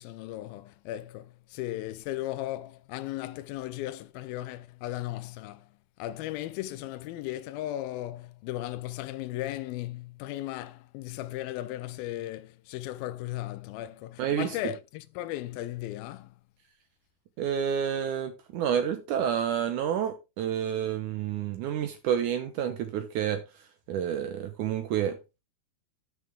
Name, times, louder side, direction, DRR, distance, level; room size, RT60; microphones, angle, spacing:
voice 1, 0.0-5.7 6.0-16.4, left 14 dB, 80° left, 2.2 m, -36 dB
voice 2, 14.2-14.6 17.4-25.2, right 9 dB, 85° right, 1.7 m, -29 dB
12.5 x 6.3 x 3.6 m
omnidirectional pair, 4.9 m